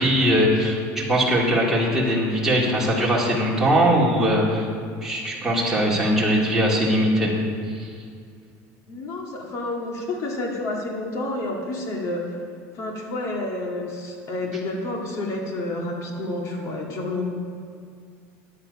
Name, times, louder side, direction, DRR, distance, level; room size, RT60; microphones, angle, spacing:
voice 1, 0.0-4.7 5.0-7.3 7.7-7.9, equal, 5° right, -5 dB, 2.5 m, -21 dB
voice 2, 8.9-12.3 12.7-17.3, left 2 dB, 45° left, 0 dB, 2.1 m, -29 dB
9.9 x 9.8 x 5.4 m, 2.2 s
cardioid pair, 145°, 7 cm